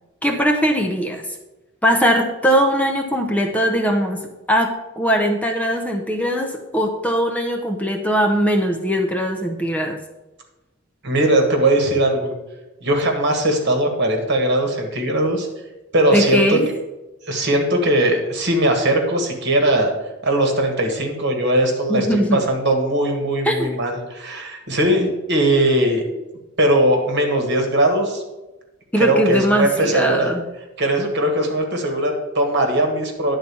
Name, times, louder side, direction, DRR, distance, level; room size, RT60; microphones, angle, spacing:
voice 1, 0.2-1.2 1.8-10.0 16.1-16.7 21.9-22.4 23.4-23.7 28.9-30.4, equal, 5° left, 4 dB, 0.6 m, -20 dB
voice 2, 11.0-12.3 12.8-15.5 15.9-16.6 17.3-19.9 20.2-26.0 26.6-28.2 29.0-30.3 30.8-33.4, right 1 dB, 60° right, 3 dB, 1.6 m, -19 dB
10.5 x 4.0 x 6.9 m, 1.0 s
head